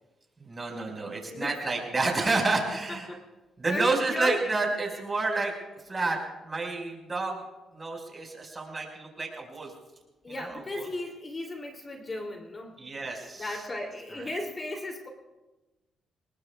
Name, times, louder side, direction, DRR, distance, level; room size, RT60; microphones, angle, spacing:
voice 1, 0.4-3.1 3.6-5.5 5.8-7.4 7.7-9.7 10.3-10.9 12.8-13.6 14.1-14.3, right 3 dB, 25° right, 1 dB, 5.1 m, -30 dB
voice 2, 1.3-1.6 2.9-3.2 3.7-4.4 10.2-12.8 13.4-15.1, left 1 dB, 30° left, 2 dB, 2.9 m, -35 dB
28.5 x 20.0 x 2.4 m, 1.1 s
cardioid pair, 90°, 0 cm